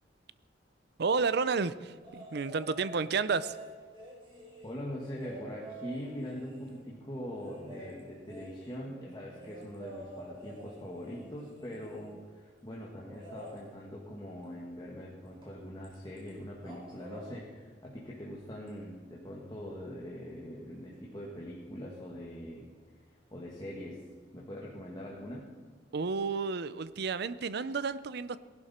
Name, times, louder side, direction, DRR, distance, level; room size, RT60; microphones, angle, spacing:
voice 1, 1.0-3.6 25.9-28.4, right 5 dB, 60° right, 16 dB, 0.5 m, -31 dB
sound 1, 2.0-2.9 3.3-6.8 7.3-12.2 13.1-13.6 15.4-15.5 15.8-16.3 16.6-17.3 18.7-18.8, right 1 dB, 30° right, 4.0 m, -49 dB
voice 2, 4.6-22.7 23.3-24.0 24.3-25.5, equal, 25° left, -3 dB, 1.9 m, -42 dB
18.5 x 11.5 x 4.4 m, 1.5 s
head